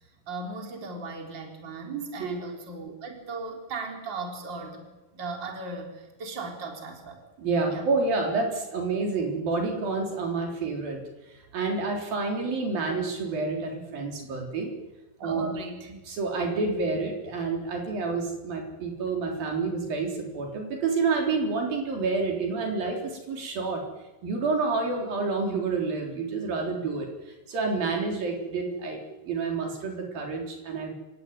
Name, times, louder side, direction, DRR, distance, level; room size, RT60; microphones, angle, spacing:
voice 1, 0.0-4.9 5.1-7.2 7.7-7.9 15.2-15.9, right 3 dB, 30° right, 2 dB, 4.4 m, -37 dB
voice 2, 7.4-11.0 11.3-14.7 15.2-15.6 15.9-23.8 24.2-30.9, right 4 dB, 70° right, 1 dB, 5.6 m, -29 dB
28.0 x 17.5 x 9.6 m, 1.1 s
omnidirectional pair, 4.2 m